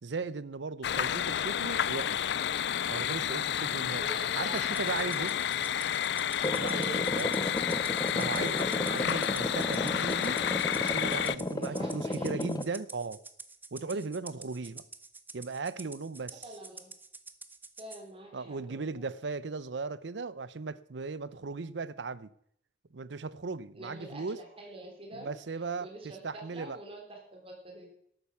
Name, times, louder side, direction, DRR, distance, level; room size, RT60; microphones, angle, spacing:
voice 1, 0.0-2.4 2.9-4.1 4.4-5.3 6.4-7.3 8.1-10.4 10.8-13.2 13.7-14.8 15.3-16.4 18.3-22.3 22.9-24.4 25.1-25.9 26.2-26.8, right 4 dB, 70° right, 0.6 m, -37 dB
sound 1, 0.8-11.4, left 9 dB, 65° left, 0.4 m, -31 dB
voice 2, 4.0-5.7 6.7-7.4 8.2-9.2 11.5-12.6 13.9-14.1 16.4-16.9 17.8-19.1 23.7-25.3 25.8-27.9, right 2 dB, 30° right, 3.5 m, -46 dB
Rattle (instrument), 4.5-18.0, right 3 dB, 10° right, 0.7 m, -49 dB
sound 2, 6.4-12.6, left 1 dB, 20° left, 0.7 m, -33 dB
12.0 x 8.9 x 6.9 m
head